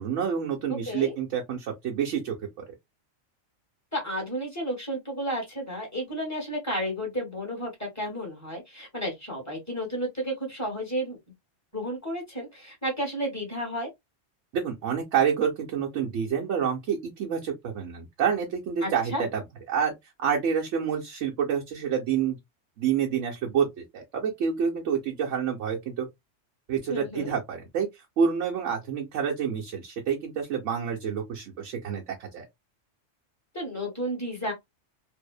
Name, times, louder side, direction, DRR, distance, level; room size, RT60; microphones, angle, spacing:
voice 1, 0.0-2.4 14.5-19.4 19.7-19.9 20.2-22.4 22.8-23.7 23.9-26.1 26.7-27.9 28.2-32.4, right 7 dB, 75° right, 0.9 m, -28 dB
voice 2, 0.7-1.1 3.9-11.2 11.7-13.9 18.8-19.2 26.9-27.3 33.5-34.5, equal, 15° left, 1.1 m, -32 dB
2.6 x 2.0 x 2.3 m
omnidirectional pair, 1.3 m